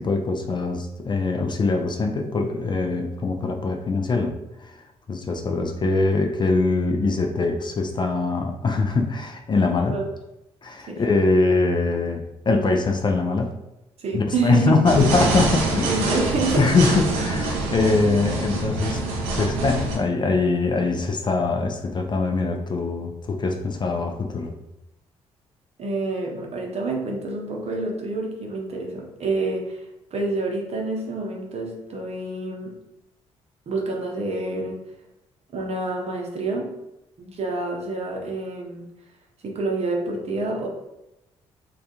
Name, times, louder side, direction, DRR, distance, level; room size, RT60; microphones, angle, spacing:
voice 1, 0.0-4.3 4.6-4.7 5.1-10.0 10.6-13.5 14.1-15.9 16.6-19.0 19.4-24.6, left 3 dB, 35° left, 3 dB, 0.4 m, -22 dB
voice 2, 14.0-14.8 15.9-16.7 25.8-29.8 30.1-32.8 33.7-34.8 35.5-36.7 37.2-38.9 39.4-40.7, right 3 dB, 50° right, 0 dB, 0.7 m, -27 dB
sound 1, 14.9-20.0, right 2 dB, 85° right, 0.5 m, -25 dB
2.3 x 2.2 x 2.8 m, 0.92 s
hypercardioid pair, 50°, 14 cm